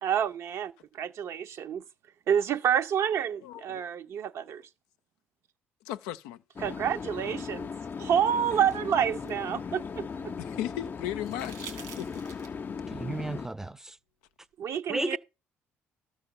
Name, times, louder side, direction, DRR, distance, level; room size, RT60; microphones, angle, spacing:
voice 1, 0.0-1.8 2.3-4.6 6.6-7.7 8.0-10.3 14.6-15.2, right 9 dB, 60° right, 0.7 m, -28 dB
voice 2, 3.4-3.9 5.9-6.4 8.5-8.6 10.4-12.1, left 12 dB, 85° left, 0.5 m, -37 dB
sound 1, 6.6-13.5, left 6 dB, 40° left, 0.5 m, -38 dB
sound 2, 8.0-10.3 11.2-12.7 14.4-14.5, right 8 dB, 85° right, 2.7 m, -49 dB
voice 3, 12.9-14.0 14.9-15.2, right 2 dB, 10° right, 0.6 m, -33 dB
12.5 x 4.8 x 7.0 m
supercardioid pair, 65°, 5 cm